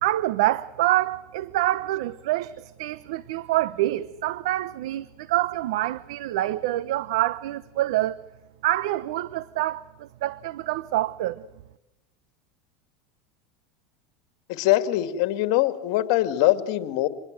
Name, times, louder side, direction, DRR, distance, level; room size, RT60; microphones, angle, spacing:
voice 1, 0.0-8.2 8.6-11.4, right 15 dB, 75° right, 0.9 m, -26 dB
voice 2, 14.5-17.1, left 15 dB, 65° left, 2.4 m, -22 dB
26.0 x 21.5 x 7.7 m
supercardioid pair, 125°, 3 cm